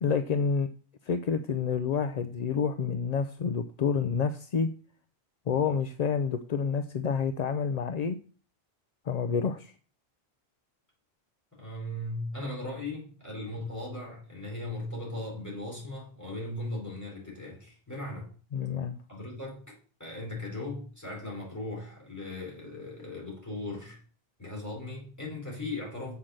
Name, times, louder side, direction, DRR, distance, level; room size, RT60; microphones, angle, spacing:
voice 1, 0.0-0.7 1.0-4.7 5.5-8.2 9.1-9.7 18.5-19.0, left 6 dB, 50° left, 11 dB, 0.5 m, -28 dB
voice 2, 11.5-18.3 19.1-19.6 20.0-24.0 24.4-26.2, left 2 dB, 15° left, -3 dB, 4.5 m, -38 dB
7.5 x 5.8 x 6.5 m, 0.41 s
omnidirectional pair, 1.1 m